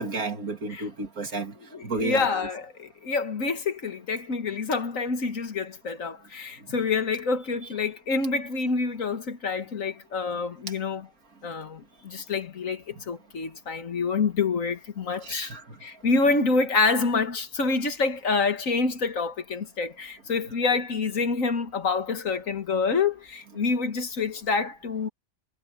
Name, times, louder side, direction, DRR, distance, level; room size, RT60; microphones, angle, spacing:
voice 1, 0.0-1.5 1.8-2.3 15.2-15.6, right 3 dB, 80° right, 3.0 m, -31 dB
voice 2, 1.7-11.1 11.4-15.5 15.8-25.1, left 4 dB, 65° left, 2.0 m, -27 dB
omnidirectional pair, 1.5 m